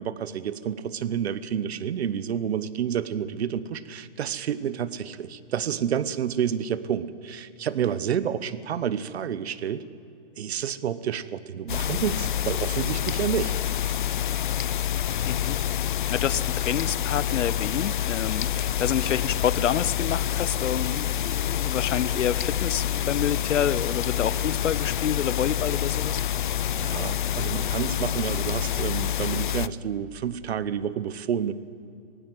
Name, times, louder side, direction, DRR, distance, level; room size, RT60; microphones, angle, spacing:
voice 1, 0.0-9.8 10.4-13.6 26.7-31.5, right 8 dB, 60° right, 16 dB, 1.1 m, -29 dB
sound 1, 11.7-29.7, left 11 dB, 45° left, 0.4 m, -27 dB
voice 2, 15.2-15.6 16.1-26.2, left 9 dB, 80° left, 19 dB, 0.9 m, -28 dB
sound 2, 16.1-27.1, right 1 dB, 15° right, 3.7 m, -50 dB
18.0 x 16.0 x 9.3 m, 2.6 s
hypercardioid pair, 165°, 36 cm